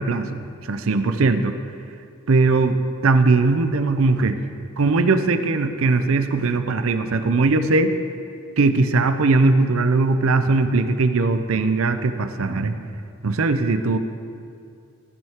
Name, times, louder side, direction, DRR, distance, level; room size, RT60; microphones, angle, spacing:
voice 1, 0.0-1.6 2.3-2.8 3.0-4.4 4.8-7.9 8.6-12.7 13.2-14.0, right 3 dB, 65° right, 9 dB, 0.5 m, -19 dB
15.0 x 5.4 x 3.6 m, 2.4 s
head